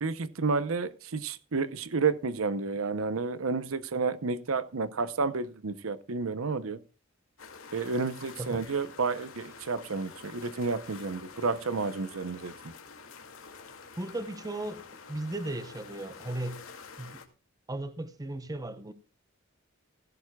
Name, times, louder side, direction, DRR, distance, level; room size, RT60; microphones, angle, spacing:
voice 1, 0.0-6.8 7.7-12.5, right 4 dB, 85° right, 0.8 m, -31 dB
sound 1, 7.4-17.3, left 5 dB, 90° left, 2.3 m, -48 dB
voice 2, 8.4-8.8 14.0-16.6 17.0-17.2 17.7-18.9, right 1 dB, 20° right, 0.8 m, -36 dB
16.5 x 15.5 x 2.3 m
head